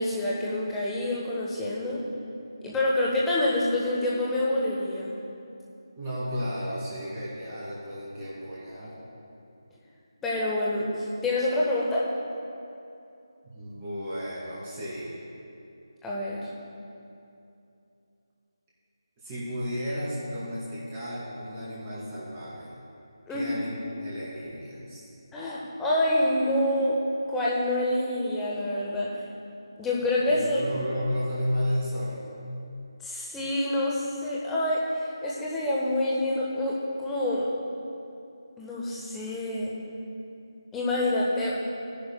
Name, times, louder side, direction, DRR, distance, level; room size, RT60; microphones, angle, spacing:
voice 1, 0.0-2.0 2.6-5.1 10.2-10.9 11.2-12.1 16.0-16.4 23.3-23.5 25.3-27.0 27.3-29.1 29.8-30.6 33.0-37.5 38.6-39.7 40.7-41.6, left 1 dB, 5° left, -6 dB, 1.0 m, -27 dB
voice 2, 6.0-9.0 13.4-15.1 19.2-22.7 23.3-25.0 30.4-32.4, equal, 20° right, -8 dB, 2.6 m, -33 dB
15.0 x 10.5 x 2.3 m, 2.7 s
figure-of-eight pair, 160°, 3 cm